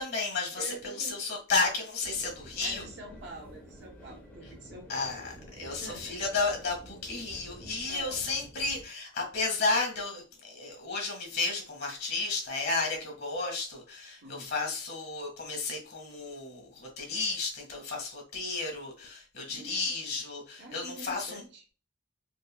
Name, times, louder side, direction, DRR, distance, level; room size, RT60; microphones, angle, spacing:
voice 1, 0.0-2.8 4.9-21.4, left 3 dB, 50° left, 1 dB, 1.6 m, -33 dB
voice 2, 0.5-1.2 2.6-5.1 5.6-6.1 7.9-8.3 14.2-14.5 19.5-19.9 20.6-21.6, right 1 dB, 55° right, -1 dB, 0.8 m, -46 dB
sound 1, 2.0-8.9, right 1 dB, 10° left, 0.8 m, -50 dB
4.5 x 2.6 x 2.2 m, 0.35 s
head